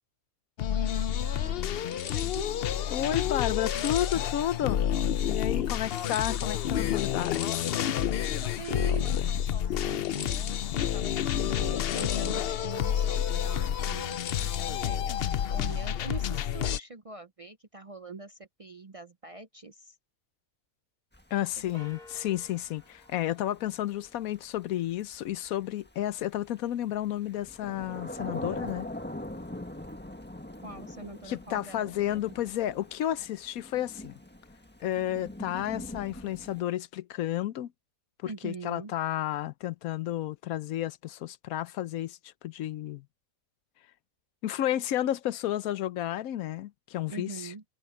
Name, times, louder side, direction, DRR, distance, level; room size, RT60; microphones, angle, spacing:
sound 1, 0.6-16.8, left 10 dB, 60° left, 0.7 m, -29 dB
voice 1, 0.6-2.5 8.4-19.9 21.5-21.9 30.6-31.9 38.2-38.9 47.1-47.6, right 4 dB, 40° right, 0.5 m, -44 dB
voice 2, 2.9-4.9 5.3-7.7 21.3-28.9 31.3-34.1 34.8-37.7 38.2-43.0 44.4-47.3, left 12 dB, 90° left, 1.1 m, -32 dB
Thunder / Rain, 21.1-36.6, left 1 dB, 10° left, 1.4 m, -43 dB
sound 2, 21.7-24.4, left 2 dB, 30° left, 4.0 m, -54 dB
omnidirectional pair, 1.4 m